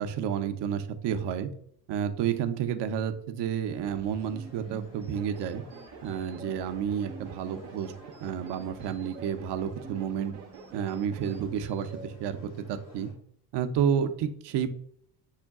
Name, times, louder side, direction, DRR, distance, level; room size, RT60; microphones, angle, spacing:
voice 1, 0.0-1.5 1.9-5.6 6.0-7.9 8.2-10.3 10.7-13.1 13.5-14.7, right 8 dB, 60° right, 8 dB, 0.7 m, -30 dB
sound 1, 3.7-13.1, left 1 dB, 90° left, 1.7 m, -54 dB
sound 2, 3.8-12.1, right 3 dB, 15° right, 0.3 m, -49 dB
sound 3, 5.1-11.5, right 6 dB, 90° right, 0.8 m, -48 dB
6.3 x 2.2 x 3.5 m, 0.67 s
supercardioid pair, 70°, 49 cm